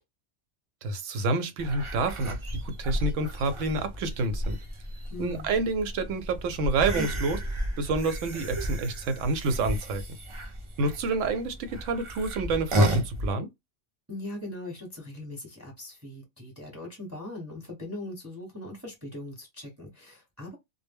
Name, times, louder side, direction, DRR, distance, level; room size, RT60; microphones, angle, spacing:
voice 1, 0.8-4.6 5.2-7.4 7.8-10.0 10.8-13.5, right 3 dB, 85° right, 0.9 m, -28 dB
sound 1, 1.6-13.3, equal, 45° right, 0.4 m, -32 dB
voice 2, 5.1-5.5 14.1-20.5, left 2 dB, 15° right, 0.8 m, -40 dB
2.1 x 2.0 x 3.4 m
omnidirectional pair, 1.3 m